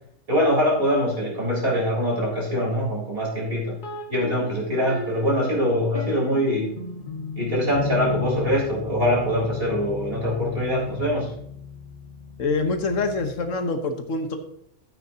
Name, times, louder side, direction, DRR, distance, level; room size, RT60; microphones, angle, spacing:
voice 1, 0.3-3.8 4.1-6.7 7.4-11.3, equal, 45° right, -4 dB, 4.1 m, -23 dB
sound 1, 3.8-13.6, left 5 dB, 40° left, 1.8 m, -35 dB
voice 2, 12.4-14.4, left 3 dB, 80° left, 7 dB, 1.4 m, -25 dB
13.0 x 8.7 x 2.8 m, 0.70 s
omnidirectional pair, 1.3 m